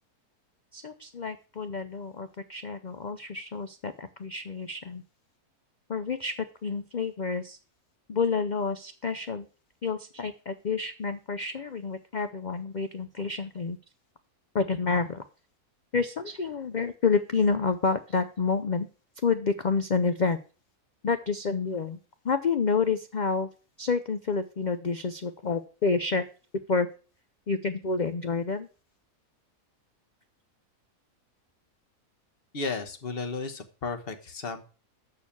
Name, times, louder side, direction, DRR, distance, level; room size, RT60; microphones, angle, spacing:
voice 1, 0.7-5.0 5.9-6.4 6.6-7.6 8.1-9.5 9.8-13.8 14.5-15.2 15.9-18.9 19.2-20.4 21.0-22.0 22.2-23.5 23.8-26.2 26.7-26.9 27.5-28.7, left 4 dB, 85° left, 10 dB, 0.4 m, -29 dB
voice 2, 32.5-34.7, left 4 dB, 40° left, 7 dB, 1.2 m, -34 dB
6.8 x 6.4 x 7.0 m, 0.37 s
omnidirectional pair, 1.6 m